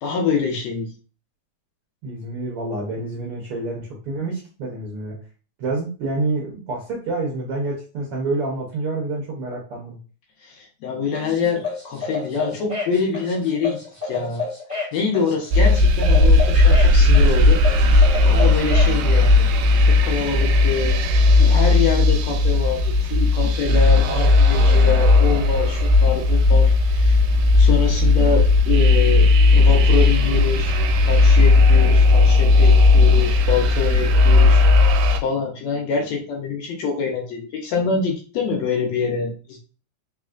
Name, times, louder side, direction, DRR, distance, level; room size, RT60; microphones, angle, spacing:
voice 1, 0.0-0.9 10.4-13.8 14.0-14.4 14.9-19.6 19.9-27.2 27.6-39.6, left 5 dB, 70° left, 1 dB, 1.9 m, -25 dB
voice 2, 2.0-5.1 5.6-10.0, right 2 dB, 65° right, -2 dB, 1.4 m, -28 dB
sound 1, 11.1-19.0, left 4 dB, 20° left, 0.4 m, -30 dB
sound 2, 15.5-35.2, left 3 dB, 90° right, 2.1 m, -15 dB
4.1 x 4.0 x 2.4 m, 0.36 s
omnidirectional pair, 3.6 m